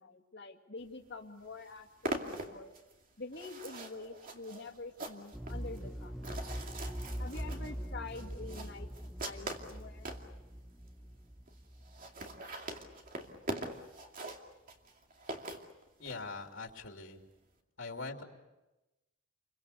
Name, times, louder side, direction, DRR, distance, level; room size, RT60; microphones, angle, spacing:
voice 1, 0.0-2.7 3.2-6.4 7.2-10.1, left 3 dB, 60° left, 4 dB, 2.2 m, -47 dB
sound 1, 1.1-1.2 1.4-10.3 10.9-11.0 11.2-11.3 11.5-11.6 11.8-16.2, right 1 dB, 45° right, 2.5 m, -43 dB
sound 2, 5.3-13.1 13.4-13.5, equal, ahead, 0.8 m, -43 dB
voice 2, 16.0-17.2 17.8-18.2, left 3 dB, 80° left, 3 dB, 3.0 m, -42 dB
29.0 x 23.5 x 6.9 m, 1.0 s
head